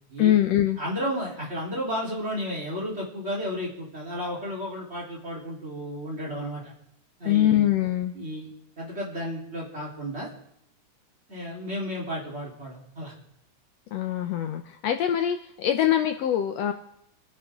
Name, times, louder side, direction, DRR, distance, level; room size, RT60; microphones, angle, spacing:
voice 1, 0.2-0.8 7.3-8.1 13.9-16.7, left 11 dB, 70° left, 7 dB, 1.8 m, -23 dB
voice 2, 0.8-6.6 7.2-7.7 8.1-8.5 8.8-10.3 11.3-13.1, equal, 20° right, -4 dB, 3.9 m, -33 dB
30.0 x 10.5 x 3.7 m, 0.75 s
omnidirectional pair, 3.4 m